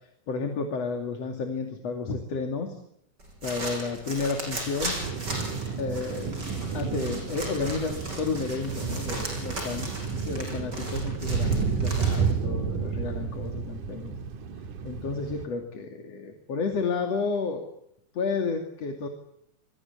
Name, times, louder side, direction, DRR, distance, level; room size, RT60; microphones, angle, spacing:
voice 1, 0.3-2.8 3.4-5.0 5.8-6.3 6.7-9.9 10.2-14.2 14.8-17.7 18.1-19.1, left 4 dB, 45° left, 4 dB, 3.5 m, -31 dB
sound 1, 3.2-12.4, right 1 dB, 25° right, 7.7 m, -37 dB
sound 2, 5.0-15.5, right 5 dB, 60° right, 3.2 m, -31 dB
28.0 x 22.0 x 8.4 m, 0.76 s
omnidirectional pair, 4.3 m